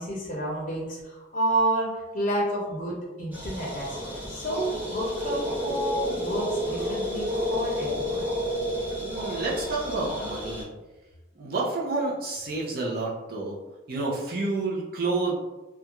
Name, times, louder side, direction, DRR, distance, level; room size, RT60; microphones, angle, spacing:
voice 1, 0.0-1.9 2.1-8.2 9.3-9.4, right 1 dB, 40° left, -5 dB, 0.6 m, -30 dB
sound 1, 3.3-10.6, equal, 10° right, 0.8 m, -31 dB
voice 2, 9.0-10.7 11.3-13.6 13.9-15.4, right 3 dB, 50° right, -4 dB, 0.5 m, -29 dB
2.4 x 2.2 x 2.9 m, 1.1 s
head